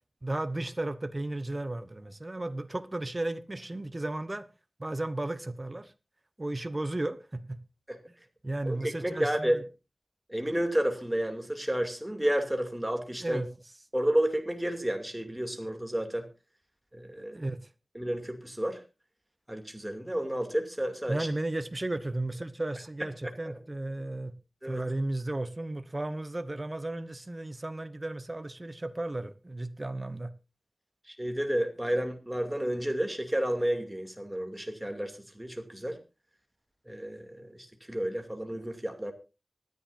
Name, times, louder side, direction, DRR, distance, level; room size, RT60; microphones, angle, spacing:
voice 1, 0.2-4.5 4.8-5.9 6.4-7.6 8.4-9.6 13.2-13.5 17.2-17.7 21.1-24.3 24.7-30.3, right 2 dB, 30° right, 1.0 m, -34 dB
voice 2, 8.7-9.6 10.3-13.4 13.9-16.3 16.9-17.3 17.9-18.8 19.5-21.3 23.5-23.6 24.6-24.8 31.1-36.0 36.9-39.1, right 1 dB, 10° right, 2.5 m, -31 dB
24.5 x 10.5 x 2.6 m
wide cardioid pair, 70°, 0 cm